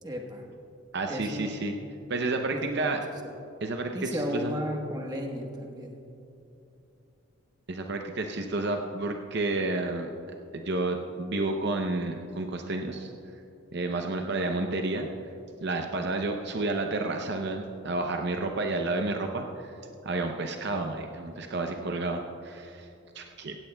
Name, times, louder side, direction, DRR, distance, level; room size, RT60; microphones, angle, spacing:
voice 1, 0.0-0.5 1.1-1.5 2.5-2.9 3.2-3.3 3.9-6.0, equal, 20° right, 1 dB, 1.2 m, -34 dB
voice 2, 0.9-1.7 2.1-3.0 3.6-3.9 4.3-4.5 7.7-10.1 10.5-13.1 13.7-15.1 15.6-19.7 20.0-22.9 23.1-23.6, right 2 dB, 55° right, 3 dB, 0.6 m, -30 dB
16.5 x 16.0 x 2.3 m, 2.8 s
head